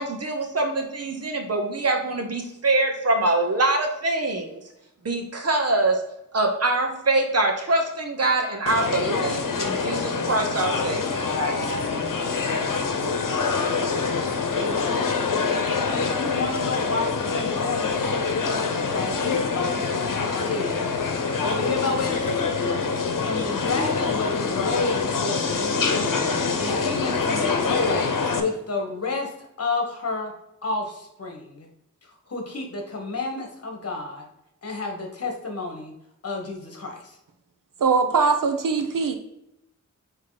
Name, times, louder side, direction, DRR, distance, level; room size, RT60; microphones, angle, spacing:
voice 1, 0.0-4.6 5.0-6.0 6.3-11.8, right 2 dB, 50° right, 4 dB, 1.1 m, -24 dB
sound 1, 8.7-28.4, left 4 dB, 80° left, 0.9 m, -25 dB
voice 2, 14.5-15.1 15.4-20.9 21.4-22.8 23.2-26.1 26.6-28.1 28.4-30.3 30.6-31.7 32.3-34.3 34.6-35.9 36.2-37.2, left 3 dB, 50° left, 2 dB, 1.5 m, -30 dB
voice 3, 37.8-39.2, right 5 dB, 85° right, 6 dB, 0.9 m, -21 dB
8.7 x 3.1 x 4.0 m, 0.84 s
wide cardioid pair, 130°, 32 cm